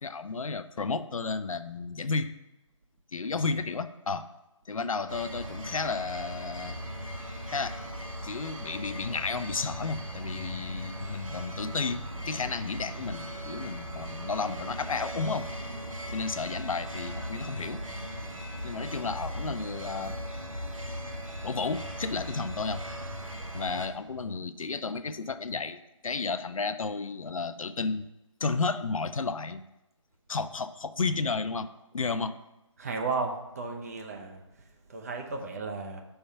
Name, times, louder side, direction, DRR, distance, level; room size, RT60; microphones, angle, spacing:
voice 1, 0.0-2.3 3.1-4.3 4.7-6.8 7.5-7.8 8.2-15.5 16.1-17.8 18.6-20.2 21.4-22.8 23.5-28.1 28.4-29.6 30.3-32.4, left 4 dB, 90° left, 12 dB, 0.4 m, -32 dB
sound 1, 5.1-23.9, equal, 90° right, 0.9 m, -38 dB
voice 2, 32.8-34.4 34.9-36.0, right 4 dB, 30° right, 3 dB, 0.6 m, -34 dB
5.5 x 3.4 x 5.6 m, 0.95 s
figure-of-eight pair, 155°, 17 cm